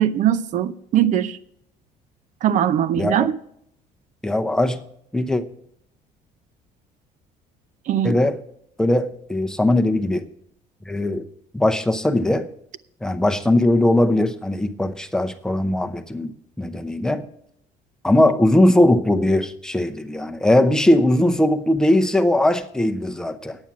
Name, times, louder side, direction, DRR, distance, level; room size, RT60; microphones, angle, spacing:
voice 1, 0.0-1.4 2.4-3.3 7.9-8.1, right 10 dB, 55° right, 0.7 m, -20 dB
voice 2, 2.9-3.3 4.2-4.8 5.1-5.4 8.0-8.4 8.8-10.3 10.9-11.3 11.5-12.5 13.0-16.3 16.6-17.3 18.0-23.6, left 1 dB, 5° left, 0.7 m, -19 dB
9.7 x 8.9 x 6.0 m
cardioid pair, 140°, 15 cm